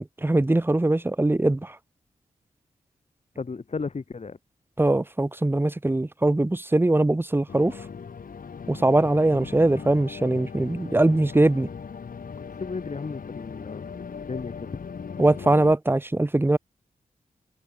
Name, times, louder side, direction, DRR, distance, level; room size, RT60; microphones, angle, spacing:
voice 1, 0.0-1.7 4.8-7.7 8.7-11.7 15.2-16.6, right 2 dB, 15° right, 0.8 m, -21 dB
voice 2, 3.4-4.4 12.5-14.8, left 4 dB, 50° left, 2.2 m, -34 dB
sound 1, 7.5-15.8, left 6 dB, 70° left, 3.7 m, -39 dB
cardioid pair, 60°, 15 cm